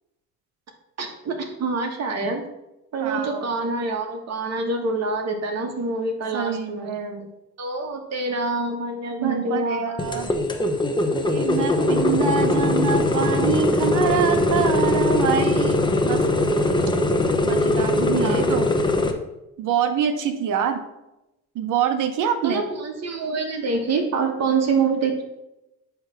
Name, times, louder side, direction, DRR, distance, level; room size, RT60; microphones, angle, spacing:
voice 1, 1.0-2.4 2.9-7.2 7.6-9.9 10.3-10.4 18.0-18.5 22.4-25.2, right 3 dB, 60° right, 3 dB, 1.6 m, -26 dB
voice 2, 3.0-3.5 6.3-7.3 9.2-10.3 11.3-16.2 17.4-18.7 19.6-20.8 21.5-22.6, right 7 dB, 85° right, 8 dB, 1.0 m, -25 dB
sound 1, 10.0-19.1, left 2 dB, 15° left, 1.0 m, -21 dB
8.6 x 3.4 x 6.0 m, 0.92 s
cardioid pair, 90°, 30 cm